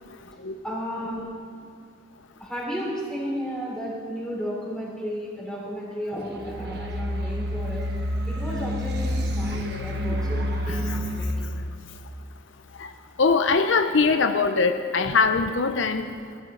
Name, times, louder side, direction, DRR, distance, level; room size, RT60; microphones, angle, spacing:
voice 1, 0.6-1.2 2.4-7.8 8.3-11.6, equal, 5° left, -5 dB, 3.8 m, -33 dB
sound 1, 6.4-11.3, equal, 55° right, 1.4 m, -28 dB
voice 2, 9.5-10.2 10.7-11.0 12.8-12.9 13.2-16.1, left 4 dB, 75° left, 7 dB, 0.7 m, -23 dB
19.0 x 12.5 x 3.9 m, 2.5 s
head